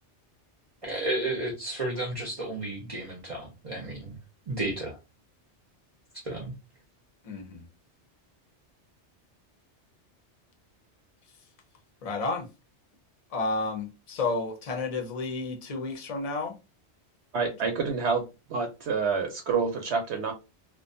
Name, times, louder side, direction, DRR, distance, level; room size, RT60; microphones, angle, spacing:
voice 1, 0.8-4.2 4.5-5.0 6.2-6.5, right 2 dB, 40° right, 0.6 m, -32 dB
voice 2, 7.2-7.7 12.0-12.5 13.3-16.6 17.6-17.7, left 3 dB, 40° left, 0.6 m, -31 dB
voice 3, 17.3-18.2 18.5-20.3, right 5 dB, 75° right, 0.8 m, -27 dB
2.4 x 2.2 x 2.5 m
omnidirectional pair, 1.2 m